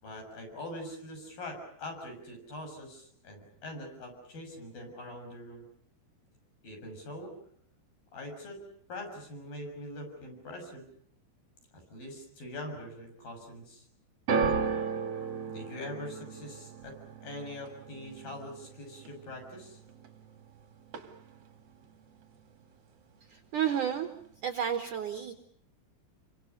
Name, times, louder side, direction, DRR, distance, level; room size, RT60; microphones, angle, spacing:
voice 1, 0.0-5.6 6.6-7.3 8.1-8.6 8.9-10.9 11.7-13.9 15.5-19.8, left 1 dB, 45° left, 3 dB, 8.2 m, -43 dB
sound 1, 14.3-20.6 20.8-21.5 22.2-22.3, right 5 dB, 50° right, 2.0 m, -35 dB
voice 2, 23.3-24.1 24.4-25.3, right 9 dB, 80° right, 7 dB, 1.8 m, -31 dB
28.5 x 25.0 x 6.7 m, 0.65 s
omnidirectional pair, 5.9 m